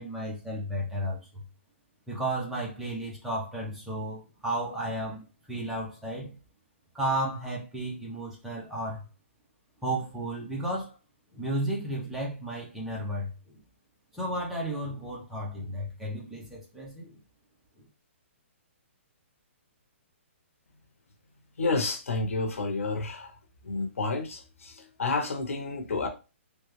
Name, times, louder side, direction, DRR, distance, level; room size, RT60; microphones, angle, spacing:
voice 1, 0.0-1.4 2.1-6.3 6.9-9.1 9.8-11.0 11.3-13.6 14.1-17.2 17.8-17.9, right 1 dB, 5° right, 0.6 m, -33 dB
voice 2, 21.6-23.4 23.6-26.1, left 3 dB, 85° left, 0.8 m, -30 dB
3.2 x 2.3 x 3.1 m
hypercardioid pair, 165°, 7 cm